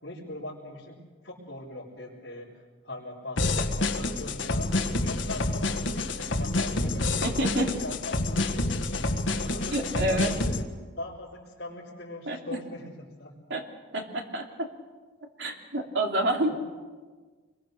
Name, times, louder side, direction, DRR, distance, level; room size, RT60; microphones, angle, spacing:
voice 1, 0.0-2.5 2.8-4.7 5.0-9.0 9.3-10.7 11.0-13.3 16.4-16.6, left 1 dB, 65° left, -9 dB, 4.6 m, -41 dB
sound 1, 3.4-10.6, left 2 dB, 85° left, 1.7 m, -28 dB
voice 2, 7.2-7.7 9.7-10.3 12.3-12.4 13.5-13.6 13.9-14.7 15.4-16.5, right 1 dB, 70° right, 2 dB, 3.2 m, -28 dB
27.0 x 22.5 x 6.7 m, 1.4 s
head